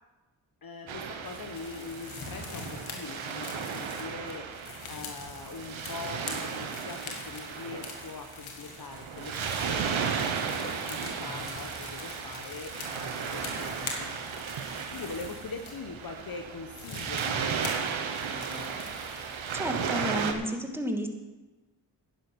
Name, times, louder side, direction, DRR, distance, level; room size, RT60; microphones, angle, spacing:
voice 1, 0.6-14.4 14.7-18.8, left 4 dB, 50° left, 5 dB, 1.2 m, -43 dB
Waves surf, 0.9-20.3, right 6 dB, 80° right, 1.3 m, -35 dB
sound 1, 1.2-15.8 16.3-16.4 16.7-19.8, left 4 dB, 90° left, 2.0 m, -44 dB
voice 2, 19.5-21.1, equal, 5° right, 3 dB, 2.4 m, -31 dB
11.0 x 10.0 x 6.3 m, 1.1 s
supercardioid pair, 45°, 47 cm